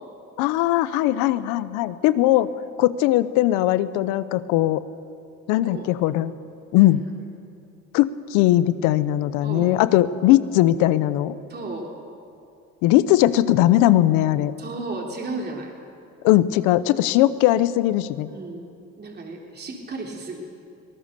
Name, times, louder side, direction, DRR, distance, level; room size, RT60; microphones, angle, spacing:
voice 1, 0.4-2.5 2.8-4.8 5.5-6.3 6.7-7.0 7.9-11.3 12.8-14.5 16.2-18.3, left 14 dB, 85° left, 15 dB, 0.8 m, -19 dB
voice 2, 9.4-9.8 11.5-11.9 14.6-15.7 18.3-18.7 19.0-20.4, right 2 dB, 35° right, 0 dB, 3.5 m, -33 dB
23.0 x 18.0 x 6.8 m, 2.5 s
supercardioid pair, 75°, 30 cm